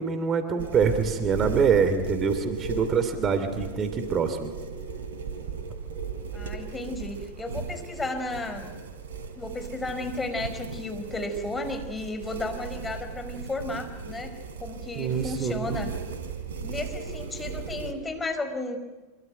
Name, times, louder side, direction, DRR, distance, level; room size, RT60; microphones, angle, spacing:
voice 1, 0.0-4.5 15.0-15.8, right 6 dB, 30° right, 9 dB, 2.8 m, -25 dB
sound 1, 0.6-17.9, right 5 dB, 70° right, 3.4 m, -36 dB
voice 2, 6.3-8.7 9.3-15.9 16.6-18.8, left 2 dB, 15° left, 6 dB, 4.8 m, -33 dB
26.0 x 24.5 x 9.3 m, 1.2 s
figure-of-eight pair, 85°, 0 cm